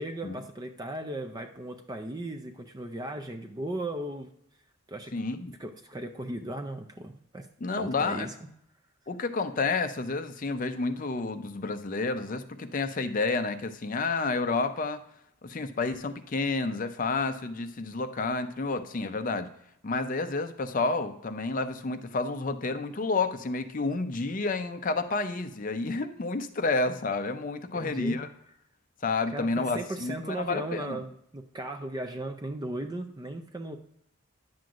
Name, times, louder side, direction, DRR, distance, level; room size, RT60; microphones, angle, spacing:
voice 1, 0.0-4.3 4.9-5.1 5.6-7.5 7.8-8.3 27.7-28.2 29.3-33.8, right 1 dB, 20° right, 6 dB, 0.4 m, -36 dB
voice 2, 5.1-5.5 7.6-8.3 9.1-15.0 15.4-19.5 19.8-28.3 29.0-31.0, left 3 dB, 35° left, 9 dB, 0.5 m, -30 dB
10.0 x 7.6 x 2.5 m, 0.75 s
head